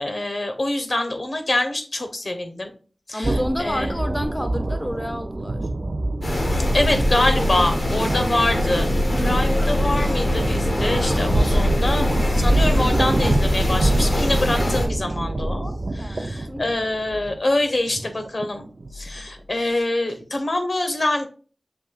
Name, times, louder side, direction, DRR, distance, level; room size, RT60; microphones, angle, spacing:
voice 1, 0.0-2.7 3.1-3.9 6.7-18.7 18.9-21.3, left 2 dB, 65° left, 0.8 m, -25 dB
voice 2, 3.1-5.6 9.1-9.5 16.0-16.6, left 1 dB, 15° left, 0.4 m, -29 dB
sound 1, 3.2-19.4, right 1 dB, 60° right, 0.3 m, -26 dB
sound 2, 6.2-14.9, left 1 dB, 90° left, 1.0 m, -22 dB
sound 3, 7.6-14.3, right 1 dB, 90° right, 0.9 m, -33 dB
6.1 x 2.6 x 2.3 m
wide cardioid pair, 65°, 0 cm